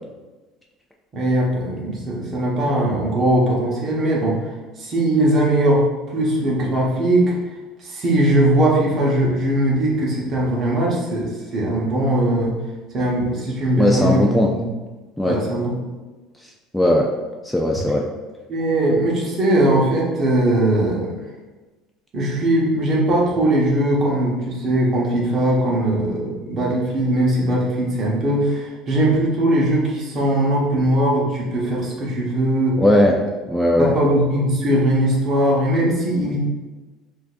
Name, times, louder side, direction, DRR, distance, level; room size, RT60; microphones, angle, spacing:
voice 1, 1.1-5.8 6.1-7.3 7.8-12.6 12.9-14.6 15.2-15.8 18.5-21.1 22.1-32.8 33.8-36.4, right 1 dB, 35° right, -3 dB, 1.1 m, -20 dB
voice 2, 13.8-14.5 15.2-15.4 16.7-17.1 17.4-18.0 32.8-33.2 33.5-33.9, left 1 dB, 5° left, -1 dB, 0.3 m, -17 dB
6.3 x 2.7 x 2.5 m, 1.2 s
cardioid pair, 145°, 0 cm